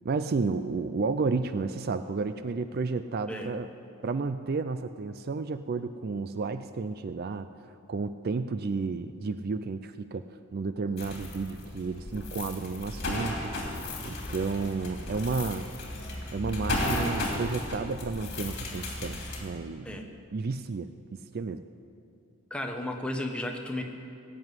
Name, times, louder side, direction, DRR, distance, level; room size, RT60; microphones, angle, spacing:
voice 1, 0.0-3.7 4.0-7.5 7.9-10.2 10.5-13.5 14.0-15.7 16.3-19.9 20.3-21.6, right 4 dB, 45° right, 11 dB, 0.4 m, -32 dB
sound 1, 11.0-19.4, left 1 dB, 50° left, 2.8 m, -34 dB
voice 2, 22.5-23.8, left 1 dB, 5° left, 2 dB, 1.2 m, -33 dB
18.0 x 7.7 x 9.6 m, 2.6 s
head